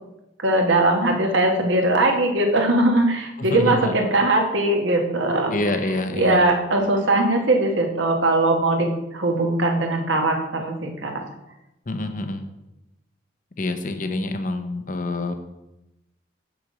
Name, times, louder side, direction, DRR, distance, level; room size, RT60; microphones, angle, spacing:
voice 1, 0.4-11.2, right 2 dB, 75° right, 2 dB, 1.3 m, -20 dB
voice 2, 3.5-3.9 5.5-6.4 11.9-12.4 13.6-15.4, left 2 dB, 40° left, 8 dB, 0.6 m, -26 dB
6.7 x 6.1 x 4.9 m, 0.94 s
head